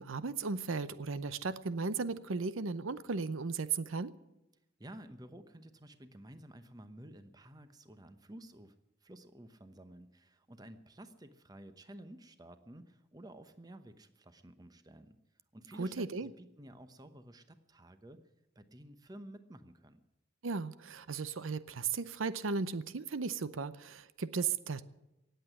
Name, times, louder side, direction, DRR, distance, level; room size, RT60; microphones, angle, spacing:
voice 1, 0.0-4.1 15.8-16.3 20.4-24.9, right 4 dB, 85° right, 14 dB, 0.7 m, -36 dB
voice 2, 4.8-8.8 9.0-15.2 15.5-18.2 18.5-20.0, right 1 dB, 20° right, 10 dB, 0.9 m, -52 dB
18.0 x 8.2 x 9.8 m, 0.94 s
head